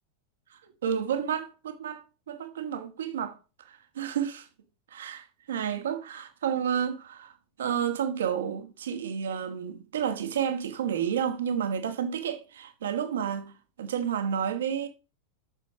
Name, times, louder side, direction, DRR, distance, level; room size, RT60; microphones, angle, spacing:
voice 1, 0.5-3.4 3.7-4.5 4.9-13.5 13.8-14.9, right 8 dB, 60° right, 1.7 m, -31 dB
9.2 x 6.8 x 5.0 m
figure-of-eight pair, 90°, 0 cm